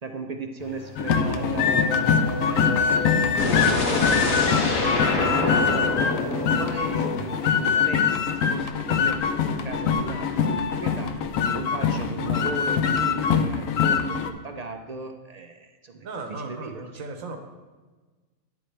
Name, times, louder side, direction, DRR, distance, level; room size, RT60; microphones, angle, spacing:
voice 1, 0.0-2.1 2.4-3.1 3.6-4.7 5.0-9.2 9.4-17.0, right 4 dB, 55° right, 5 dB, 0.4 m, -36 dB
Race car auto racing / Accelerating revving vroom, 0.6-7.9, left 5 dB, 30° left, 0.5 m, -34 dB
sound 1, 1.0-14.3, left 6 dB, 75° left, 1.0 m, -23 dB
sound 2, 3.4-7.3, left 2 dB, 90° left, 1.6 m, -26 dB
voice 2, 15.9-17.4, right 3 dB, 75° right, 5 dB, 1.4 m, -36 dB
10.5 x 8.5 x 3.3 m, 1.3 s
omnidirectional pair, 1.4 m